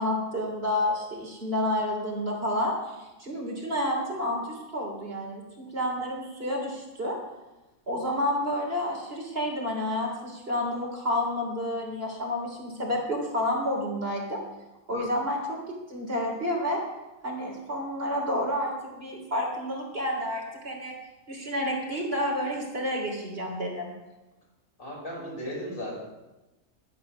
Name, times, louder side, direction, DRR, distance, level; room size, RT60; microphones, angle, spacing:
voice 1, 0.0-7.2 7.9-14.4 14.9-15.6 15.9-16.8 17.2-20.9 21.3-23.9, left 1 dB, 45° right, -1 dB, 3.4 m, -30 dB
voice 2, 24.8-25.9, equal, 85° left, -4 dB, 5.9 m, -35 dB
12.0 x 9.9 x 6.1 m, 1.0 s
omnidirectional pair, 1.5 m